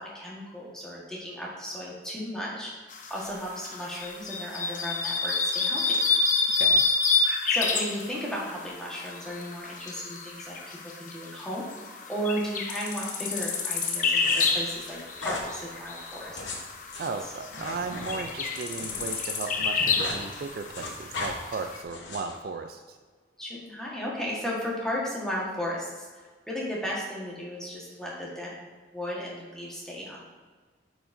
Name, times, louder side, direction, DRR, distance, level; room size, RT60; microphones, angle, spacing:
voice 1, 0.0-2.7 3.1-5.8 7.5-11.6 12.1-16.4 23.4-28.6 28.9-30.2, equal, 5° left, -5 dB, 1.3 m, -35 dB
sound 1, 2.9-21.8, left 4 dB, 45° left, 0.7 m, -29 dB
sound 2, 14.2-14.5 15.2-15.5 16.2-19.2 19.5-20.2 20.5-21.3 21.9-22.4, left 2 dB, 90° left, 1.1 m, -37 dB
voice 2, 17.0-23.0, right 4 dB, 50° right, 6 dB, 0.3 m, -36 dB
8.7 x 4.9 x 2.6 m, 1.4 s
head